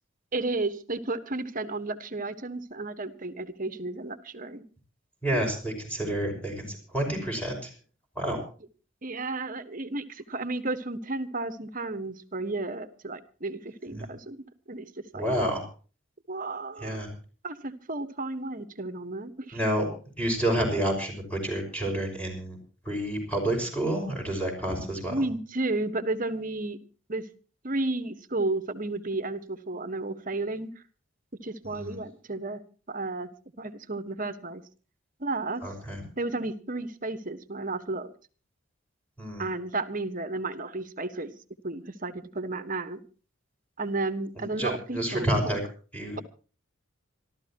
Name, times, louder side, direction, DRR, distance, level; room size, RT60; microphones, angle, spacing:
voice 1, 0.3-4.6 9.0-14.4 14.7-14.9 15.1-15.2 16.3-17.0 17.4-19.6 25.1-26.8 27.1-27.2 27.6-30.7 31.4-32.6 32.9-33.3 33.6-34.6 35.2-35.6 36.2-38.1 39.4-41.3 41.6-43.0 43.8-45.5, right 2 dB, 45° right, 11 dB, 1.4 m, -32 dB
voice 2, 5.2-7.7 8.2-8.4 14.0-14.1 15.1-15.6 16.8-17.1 19.5-19.9 20.2-22.6 22.9-25.1 31.7-32.0 35.6-36.0 39.2-39.5 44.4-45.6 45.9-46.2, right 1 dB, 5° left, 1 dB, 5.7 m, -29 dB
26.5 x 13.0 x 3.0 m, 0.38 s
head